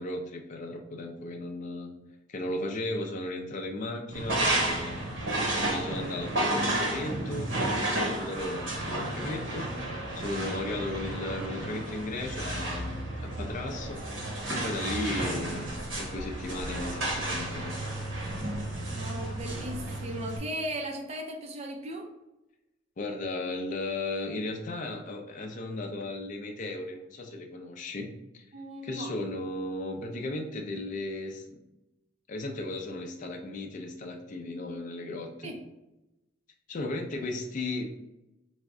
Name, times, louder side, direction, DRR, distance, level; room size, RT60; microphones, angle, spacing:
voice 1, 0.0-1.9 2.3-5.0 5.5-14.0 14.5-17.8 23.0-28.4 28.8-31.5 32.3-35.5 36.7-37.9, left 2 dB, 40° left, 2 dB, 0.4 m, -36 dB
sound 1, 4.1-20.4, right 1 dB, 80° right, 0.9 m, -32 dB
voice 2, 18.9-22.1 28.5-29.1 35.4-35.6, right 1 dB, 35° right, 2 dB, 0.5 m, -37 dB
3.4 x 2.1 x 3.6 m, 0.95 s
head